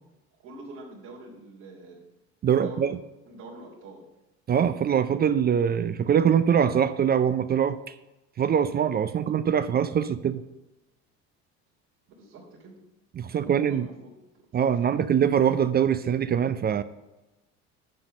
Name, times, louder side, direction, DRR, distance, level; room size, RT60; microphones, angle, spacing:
voice 1, 0.4-2.0 2.5-2.9 3.3-4.0 12.2-12.8 13.3-13.9 14.2-15.0, right 2 dB, 80° right, -5 dB, 3.6 m, -45 dB
voice 2, 2.4-3.0 4.5-7.8 8.4-10.4 13.2-13.9 14.5-16.8, right 8 dB, 30° right, 13 dB, 0.4 m, -23 dB
10.5 x 4.1 x 6.5 m, 1.0 s
supercardioid pair, 90°, 33 cm